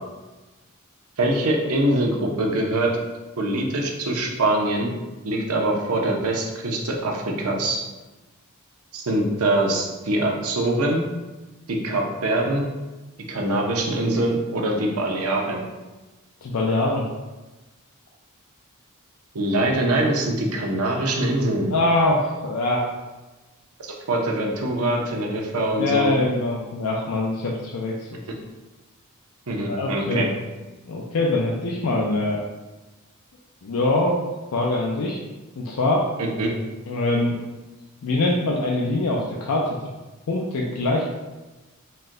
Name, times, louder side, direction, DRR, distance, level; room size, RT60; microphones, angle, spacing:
voice 1, 1.2-3.0 3.4-4.9 5.2-7.8 8.9-11.0 11.7-12.7 13.3-15.6 19.3-21.7 23.8-26.2 29.5-30.3 36.2-36.5, right 1 dB, 75° right, 0 dB, 0.7 m, -23 dB
voice 2, 16.4-17.1 21.7-22.9 25.8-28.1 29.7-30.3 30.9-32.4 33.6-34.2 34.5-35.2 35.6-36.1 36.9-37.4 38.0-39.8 40.3-41.0, left 2 dB, 75° left, -2 dB, 0.5 m, -23 dB
4.3 x 2.2 x 3.7 m, 1.1 s
head